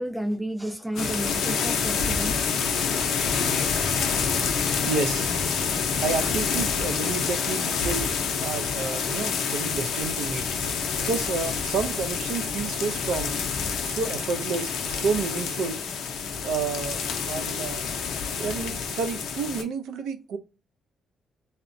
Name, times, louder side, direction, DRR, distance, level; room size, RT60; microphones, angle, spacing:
voice 1, 0.0-2.4, right 1 dB, 5° right, 0.5 m, -31 dB
sound 1, 1.0-19.6, left 6 dB, 80° left, 0.5 m, -27 dB
voice 2, 4.9-5.3 6.0-8.1 8.4-10.5 11.0-13.4 13.8-15.8 16.4-17.0 17.3-17.9 18.4-20.4, right 5 dB, 80° right, 0.4 m, -30 dB
2.7 x 2.0 x 2.5 m
cardioid pair, 90°, 0 cm